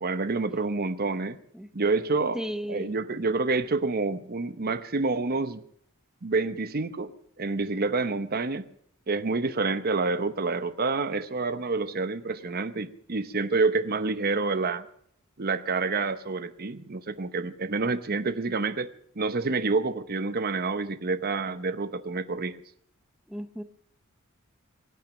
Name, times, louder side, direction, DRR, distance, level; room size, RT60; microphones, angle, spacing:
voice 1, 0.0-1.4 1.7-2.4 2.7-5.6 6.2-7.1 7.4-8.6 9.1-14.9 15.4-18.9 19.2-22.6, right 3 dB, 45° right, 12 dB, 0.9 m, -28 dB
voice 2, 2.3-3.0 23.3-23.6, equal, 5° right, 10 dB, 0.8 m, -34 dB
23.0 x 9.1 x 6.2 m, 0.66 s
head